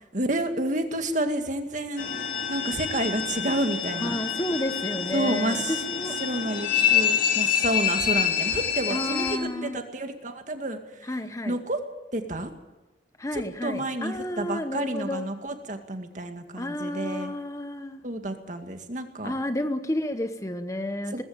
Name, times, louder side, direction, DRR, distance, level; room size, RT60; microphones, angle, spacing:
voice 1, 0.1-2.1 2.5-4.2 5.1-5.8 6.2-10.8 11.5-11.8 12.1-12.5 13.3-17.3 18.0-19.3 21.1-21.2, right 1 dB, 45° right, 6 dB, 2.2 m, -30 dB
sound 1, 2.0-9.4, left 9 dB, 50° left, 2.5 m, -27 dB
voice 2, 4.0-6.2 8.9-9.9 11.0-11.6 13.2-15.2 16.6-18.0 19.2-21.2, left 1 dB, 20° left, 9 dB, 0.9 m, -31 dB
20.0 x 15.0 x 8.9 m, 1.1 s
head